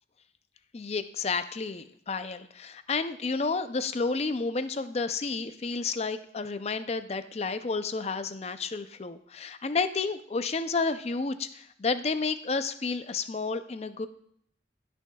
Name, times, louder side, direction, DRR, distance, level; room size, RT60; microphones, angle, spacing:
voice 1, 0.7-14.1, left 4 dB, 35° left, 11 dB, 0.4 m, -31 dB
17.0 x 6.2 x 2.3 m, 0.69 s
head